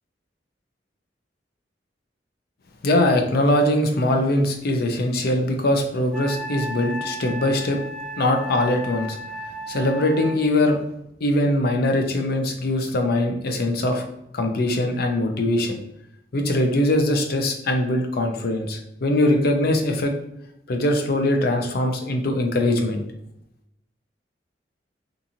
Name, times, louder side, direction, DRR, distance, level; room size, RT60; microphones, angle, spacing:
voice 1, 2.8-7.8 8.2-9.2 9.7-10.8 11.2-14.0 14.3-15.8 16.3-20.1 20.7-23.0, left 1 dB, 55° left, 4 dB, 0.5 m, -22 dB
Wind instrument woodwind instrument, 6.1-10.4, right 1 dB, ahead, 0.5 m, -34 dB
2.8 x 2.5 x 2.5 m, 0.81 s
head